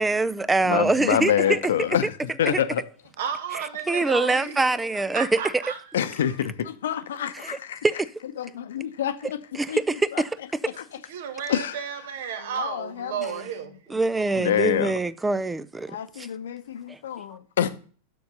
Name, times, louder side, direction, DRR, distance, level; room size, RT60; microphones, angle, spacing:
voice 1, 0.0-1.6 2.5-2.6 3.9-5.4 7.4-7.6 7.8-8.0 9.6-10.3 13.9-16.0 16.9-17.0, right 3 dB, 10° right, 0.5 m, -24 dB
voice 2, 0.6-2.8 5.9-7.9 8.4-10.2 10.6-10.8 11.5-11.8 12.4-13.5 14.3-15.0 15.9-17.7, left 10 dB, 60° left, 0.8 m, -27 dB
voice 3, 3.2-5.8 11.1-14.0, right 7 dB, 55° right, 1.5 m, -33 dB
6.9 x 6.4 x 6.6 m
figure-of-eight pair, 90°, 0 cm